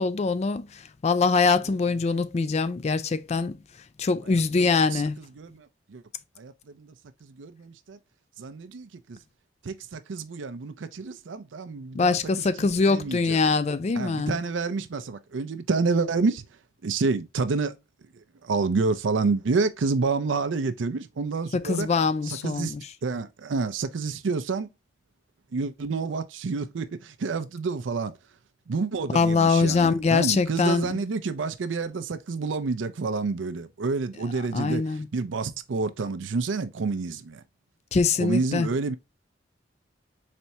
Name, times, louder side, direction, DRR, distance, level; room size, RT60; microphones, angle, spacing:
voice 1, 0.0-3.6 4.0-5.2 11.9-14.3 21.5-22.8 29.1-30.9 34.5-35.1 37.9-38.7, left 4 dB, 35° left, 0.3 m, -23 dB
voice 2, 1.6-2.0 4.2-4.4 4.8-6.0 6.4-6.9 7.2-8.0 8.4-9.2 9.6-13.4 14.0-16.5 16.8-17.8 18.1-21.9 22.2-22.7 23.0-24.7 25.5-28.2 28.7-37.4 38.2-38.9, right 4 dB, 75° right, 0.5 m, -29 dB
4.3 x 3.3 x 2.7 m
head